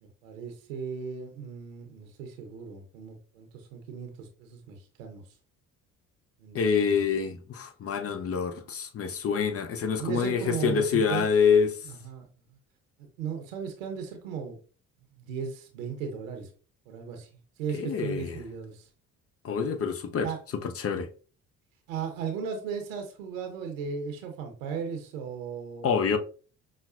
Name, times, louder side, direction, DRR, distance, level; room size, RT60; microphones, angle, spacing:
voice 1, 0.0-5.2 6.4-7.0 10.0-11.3 11.8-12.3 13.0-14.6 15.2-16.5 16.9-17.3 17.6-18.9 20.2-20.4 21.9-26.0, right 6 dB, 90° right, 0.7 m, -36 dB
voice 2, 6.5-11.8 17.7-18.4 19.4-20.3 20.6-21.1 25.8-26.2, left 6 dB, 40° left, 0.6 m, -26 dB
5.6 x 2.1 x 2.4 m
hypercardioid pair, 55°, 38 cm